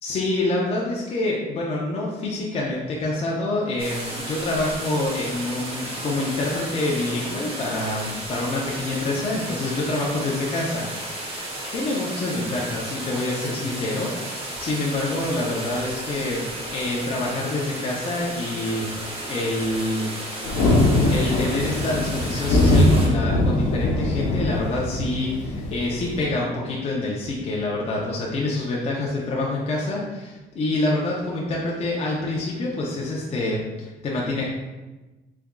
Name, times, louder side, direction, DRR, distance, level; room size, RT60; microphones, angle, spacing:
voice 1, 0.0-10.9 11.5-16.4 16.7-20.1 21.1-34.5, left 2 dB, 35° left, -4 dB, 0.6 m, -27 dB
sound 1, 3.8-23.1, right 1 dB, 35° right, 1.1 m, -33 dB
Thunder, 20.4-26.3, left 1 dB, 85° left, 0.7 m, -21 dB
3.5 x 3.4 x 2.2 m, 1.1 s
cardioid pair, 110°, 17 cm